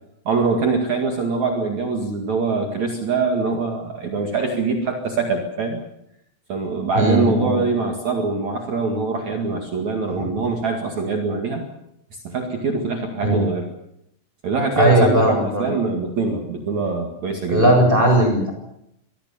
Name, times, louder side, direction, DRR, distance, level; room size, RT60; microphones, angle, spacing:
voice 1, 0.3-5.8 6.5-11.6 12.2-13.7 14.4-17.8, right 4 dB, 50° right, 3 dB, 3.1 m, -23 dB
voice 2, 7.0-7.6 13.2-13.4 14.8-15.7 17.5-18.5, right 1 dB, 10° right, 2 dB, 7.1 m, -17 dB
25.5 x 20.5 x 7.2 m, 0.78 s
omnidirectional pair, 4.8 m